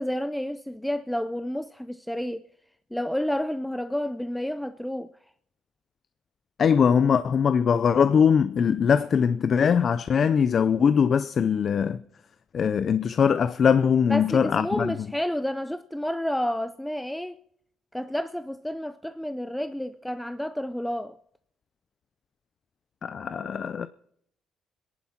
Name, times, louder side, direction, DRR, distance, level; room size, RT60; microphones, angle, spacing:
voice 1, 0.0-2.4 2.9-5.1 14.1-17.4 17.9-21.2, equal, 5° left, 0.5 m, -30 dB
voice 2, 6.6-12.0 12.5-14.9 23.0-23.9, left 7 dB, 50° left, 0.5 m, -21 dB
25.0 x 11.0 x 4.4 m
cardioid pair, 90°, 0 cm